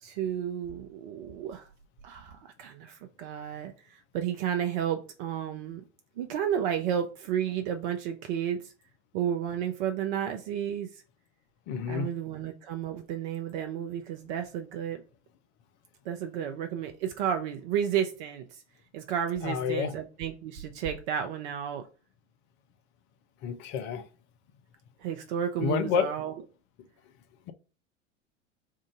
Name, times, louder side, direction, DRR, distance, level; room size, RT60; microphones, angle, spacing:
voice 1, 0.0-1.7 2.0-5.8 6.2-8.7 9.1-11.0 11.9-15.0 16.0-18.6 18.9-21.9 25.0-26.3, right 9 dB, 45° right, 0.6 m, -32 dB
voice 2, 11.7-12.1 19.4-19.9 23.4-24.1 25.6-26.1, left 7 dB, 35° left, 0.5 m, -29 dB
3.7 x 2.5 x 3.9 m
figure-of-eight pair, 85°, 35 cm